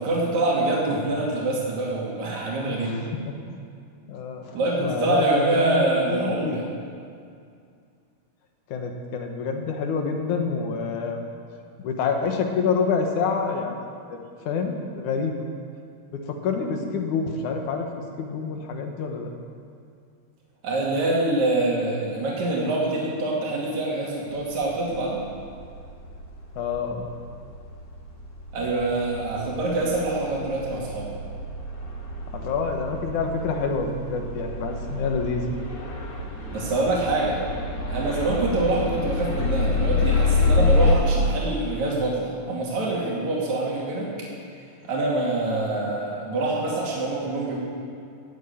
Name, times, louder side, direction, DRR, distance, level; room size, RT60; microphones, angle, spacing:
voice 1, 0.0-3.0 4.5-6.7 20.6-25.2 28.5-31.1 36.5-37.4 37.9-44.1 44.8-47.6, right 2 dB, 70° right, -4 dB, 3.7 m, -25 dB
voice 2, 2.6-3.6 4.1-6.7 8.7-11.2 11.8-13.8 14.1-14.2 14.5-15.4 16.1-17.9 18.2-19.3 26.6-27.1 32.3-35.5, left 5 dB, 80° left, 3 dB, 2.8 m, -27 dB
sound 1, 24.4-40.9, left 3 dB, 40° left, 2.4 m, -28 dB
15.5 x 8.0 x 9.2 m, 2.3 s
omnidirectional pair, 3.5 m